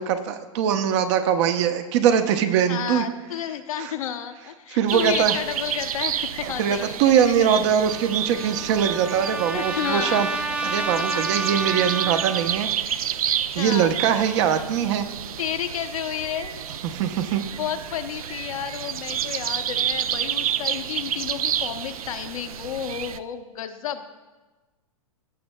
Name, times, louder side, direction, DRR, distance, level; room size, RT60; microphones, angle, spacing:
voice 1, 0.0-3.0 3.8-3.9 4.7-5.3 6.4-10.3 10.6-13.0 13.5-15.1 16.8-17.4, right 8 dB, 50° right, 8 dB, 0.7 m, -22 dB
voice 2, 2.7-7.8 9.5-10.2 13.6-13.9 15.4-16.5 17.2-24.1, left 9 dB, 70° left, 7 dB, 0.8 m, -31 dB
sound 1, 4.9-23.2, right 9 dB, 80° right, 0.4 m, -30 dB
Trumpet, 7.9-12.7, right 2 dB, 5° right, 0.4 m, -30 dB
16.0 x 6.0 x 2.2 m, 1.2 s
hypercardioid pair, 110°, 18 cm